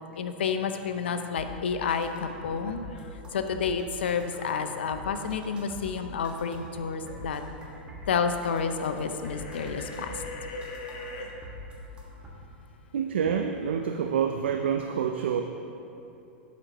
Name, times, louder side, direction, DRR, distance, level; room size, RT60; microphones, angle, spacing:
voice 1, 0.2-2.8 3.3-7.4 8.1-10.1, left 6 dB, 80° left, 8 dB, 0.5 m, -30 dB
sound 1, 1.3-12.3, equal, 15° right, 1.5 m, -44 dB
sound 2, 9.2-11.3, left 2 dB, 60° left, 1.0 m, -39 dB
voice 2, 12.9-15.4, right 7 dB, 80° right, 5 dB, 0.4 m, -27 dB
11.5 x 5.0 x 2.9 m, 2.8 s
hypercardioid pair, 100°, 6 cm